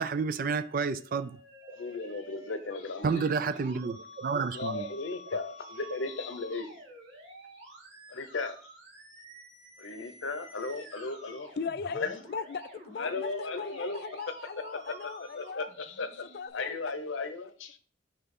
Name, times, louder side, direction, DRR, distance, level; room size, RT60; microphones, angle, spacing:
voice 1, 0.0-1.4 3.0-4.9, right 5 dB, 45° right, 0.3 m, -30 dB
Musical instrument, 0.6-16.5, equal, 65° right, 1.5 m, -50 dB
voice 2, 1.7-3.3 4.5-6.7 8.1-8.6 9.8-11.5 11.9-12.2 13.0-14.0 15.0-17.8, left 3 dB, 80° left, 0.7 m, -36 dB
voice 3, 11.6-15.7 16.2-16.8, left 5 dB, 50° left, 0.4 m, -38 dB
5.8 x 3.4 x 5.3 m
head